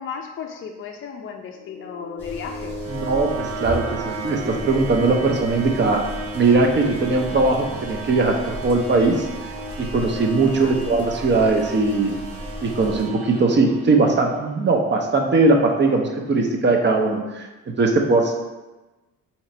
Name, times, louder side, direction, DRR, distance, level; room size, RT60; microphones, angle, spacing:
voice 1, 0.0-2.7 10.5-10.8, left 6 dB, 45° left, 2 dB, 0.4 m, -34 dB
sound 1, 1.5-14.5, right 2 dB, 85° right, 0.7 m, -34 dB
sound 2, 2.2-13.1, left 1 dB, 5° left, 0.7 m, -37 dB
voice 2, 2.9-6.0 6.3-9.3 9.8-12.2 12.6-17.5 17.8-18.3, right 3 dB, 35° right, 2 dB, 0.6 m, -20 dB
2.9 x 2.4 x 4.2 m, 1.1 s
cardioid pair, 90°, 30 cm